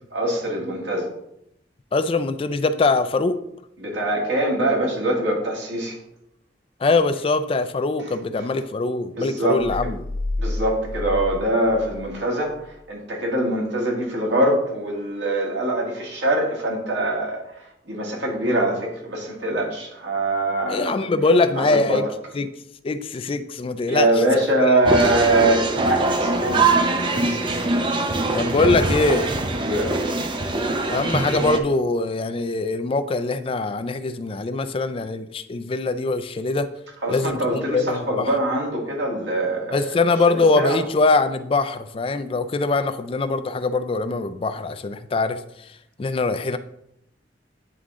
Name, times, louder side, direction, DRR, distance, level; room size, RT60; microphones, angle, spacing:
voice 1, 0.1-1.1 3.8-6.0 8.1-8.2 9.1-9.6 10.4-21.0 21.6-22.0 23.9-27.7 29.6-30.3 37.0-39.8 40.3-40.8, right 1 dB, 90° right, -1 dB, 1.9 m, -23 dB
voice 2, 1.9-3.4 6.8-10.0 20.7-22.0 22.3-22.5 22.8-24.1 24.3-24.4 28.2-29.3 30.9-36.7 37.1-38.3 39.7-45.4 46.0-46.6, left 3 dB, 30° left, 11 dB, 0.3 m, -22 dB
sound 1, 9.6-12.2 12.5-12.6, left 2 dB, 80° left, 0.8 m, -30 dB
sound 2, 24.9-31.6, right 3 dB, 30° right, 0.6 m, -22 dB
9.1 x 3.6 x 3.7 m, 0.79 s
head